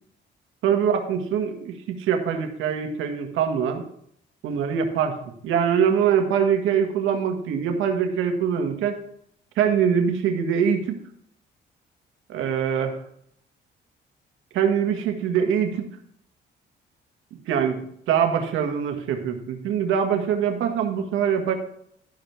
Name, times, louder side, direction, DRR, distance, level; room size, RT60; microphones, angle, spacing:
voice 1, 0.6-3.8 4.4-5.2 5.4-9.0 9.6-11.0 12.3-13.0 14.5-15.9 17.3-17.8 18.1-21.5, right 7 dB, 85° right, 5 dB, 1.7 m, -23 dB
12.0 x 5.3 x 6.0 m, 0.68 s
cardioid pair, 90°, 20 cm